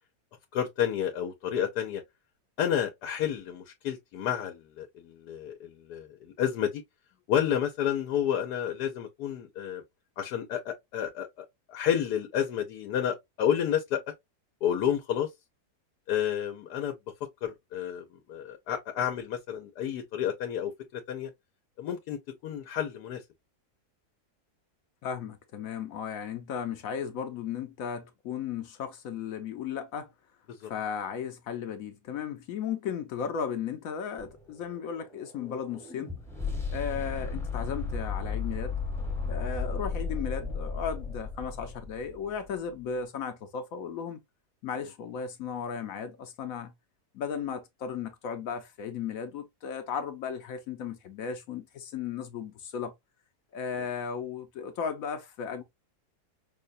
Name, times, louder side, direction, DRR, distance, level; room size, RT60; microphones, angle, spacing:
voice 1, 0.5-2.0 2.6-6.8 7.3-9.8 10.2-14.0 14.6-15.3 16.1-16.9 17.4-21.3 21.8-23.2 30.6-30.7, left 9 dB, 90° left, 1.2 m, -30 dB
voice 2, 25.0-30.1 30.6-36.1 36.7-38.8 39.3-44.2 44.6-46.7 47.1-52.9 53.5-55.6, left 7 dB, 70° left, 1.0 m, -35 dB
sound 1, 34.2-42.3, left 4 dB, ahead, 0.7 m, -34 dB
5.5 x 2.2 x 2.5 m
omnidirectional pair, 1.7 m